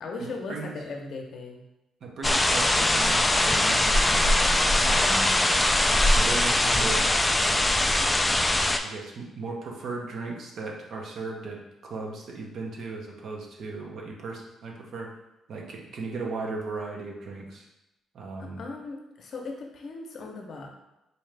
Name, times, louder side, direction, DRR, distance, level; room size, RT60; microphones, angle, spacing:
voice 1, 0.0-1.6 18.4-20.7, left 3 dB, 60° left, 1 dB, 0.7 m, -38 dB
voice 2, 2.0-4.3 4.8-5.3 5.8-7.6 8.3-15.1 15.5-17.7 18.1-18.6, right 3 dB, 65° right, 0 dB, 0.8 m, -37 dB
sound 1, 2.2-8.8, left 1 dB, 15° left, 0.3 m, -22 dB
4.2 x 2.5 x 3.3 m, 0.92 s
cardioid pair, 90°, 0 cm